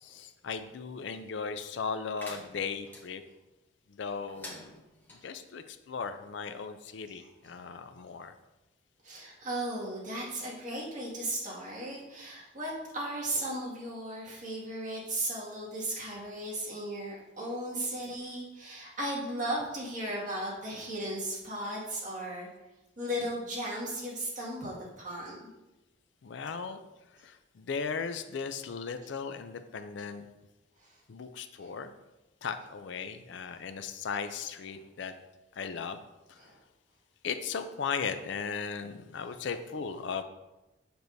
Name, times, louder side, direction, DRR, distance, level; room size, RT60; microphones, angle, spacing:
voice 1, 0.0-3.2 3.9-4.8 5.1-8.3 26.2-26.8 27.1-30.3 31.1-31.9 32.4-35.1 35.6-36.0 36.3-36.4 37.2-40.2, left 5 dB, 65° left, 9 dB, 0.4 m, -37 dB
sound 1, 2.2-3.0 4.3-5.2, left 1 dB, 10° left, 1.0 m, -47 dB
voice 2, 9.0-22.5 23.0-25.4 36.4-36.5, right 1 dB, 40° right, -5 dB, 2.0 m, -36 dB
6.8 x 6.0 x 2.7 m, 1.0 s
head